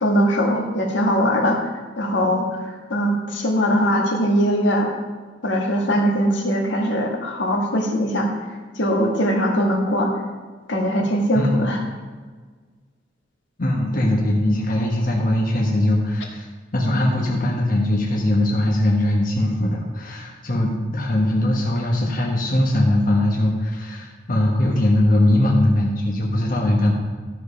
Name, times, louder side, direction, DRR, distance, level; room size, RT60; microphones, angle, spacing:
voice 1, 0.0-1.6 2.0-4.9 5.4-8.3 8.7-10.1 10.7-11.8, equal, 70° left, 1 dB, 1.7 m, -21 dB
voice 2, 11.3-11.7 13.6-16.5 16.7-26.9, left 1 dB, 45° left, -2 dB, 1.3 m, -20 dB
13.5 x 5.1 x 5.6 m, 1.5 s
head